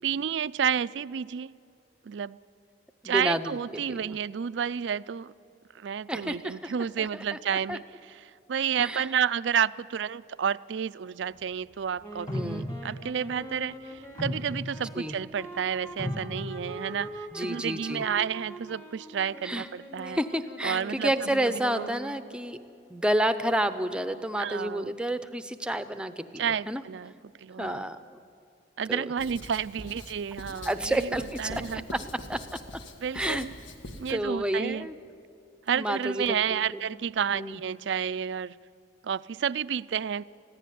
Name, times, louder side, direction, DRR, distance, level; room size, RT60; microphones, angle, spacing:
voice 1, 0.0-1.5 2.1-2.4 3.0-5.3 5.7-20.2 20.6-21.9 24.4-24.9 26.4-27.1 27.4-27.9 28.8-31.8 33.0-33.5 34.0-34.9 35.7-38.6 39.0-40.2, right 7 dB, 75° right, 18 dB, 0.4 m, -31 dB
voice 2, 3.0-3.6 3.9-4.1 6.1-6.7 7.0-7.1 7.7-7.8 8.8-9.0 12.3-12.6 15.0-15.1 17.3-18.0 19.4-19.7 20.1-22.6 22.9-26.8 27.6-28.0 28.9-29.0 30.6-31.8 32.3-32.4 33.1-33.5 34.1-34.9 35.7-36.8 37.3-37.6, right 1 dB, 5° right, 10 dB, 0.6 m, -30 dB
sound 1, 12.0-22.4, right 1 dB, 15° left, 1.4 m, -44 dB
sound 2, 12.3-13.0 13.9-14.9 15.5-15.6 16.0-17.0, left 1 dB, 35° left, 3.1 m, -35 dB
Writing, 29.2-34.2, left 1 dB, 85° left, 1.6 m, -43 dB
21.5 x 15.0 x 9.3 m, 2.5 s
head